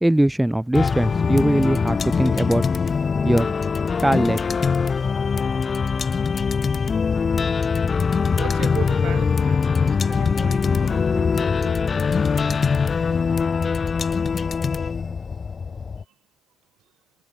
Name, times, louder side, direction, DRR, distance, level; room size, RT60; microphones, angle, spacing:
voice 1, 0.0-2.7 3.2-3.5 4.0-4.4, right 1 dB, 5° right, 0.9 m, -20 dB
sound 1, 0.7-16.0, left 5 dB, 30° left, 0.7 m, -22 dB
voice 2, 8.3-12.2, right 13 dB, 55° right, 6.5 m, -37 dB
figure-of-eight pair, 55°, 0 cm